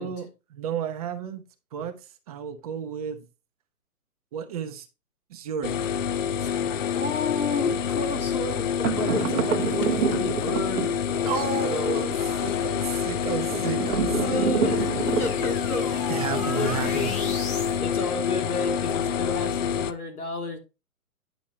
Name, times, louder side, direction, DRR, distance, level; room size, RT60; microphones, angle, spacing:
voice 1, 0.0-1.4 1.7-3.3 4.3-4.9 5.3-5.8 11.2-14.5 16.1-17.1, right 8 dB, 25° right, 0.7 m, -32 dB
sound 1, 5.6-19.9, left 8 dB, 60° left, 0.7 m, -27 dB
voice 2, 6.9-12.0 14.1-14.9 15.2-16.0 16.3-17.3 17.8-20.6, left 4 dB, 80° left, 2.9 m, -32 dB
sound 2, 8.8-11.4 13.5-15.8, right 8 dB, 65° right, 0.8 m, -28 dB
sound 3, 13.9-17.8, left 2 dB, 15° left, 1.2 m, -36 dB
10.0 x 6.2 x 2.8 m
hypercardioid pair, 140°, 44 cm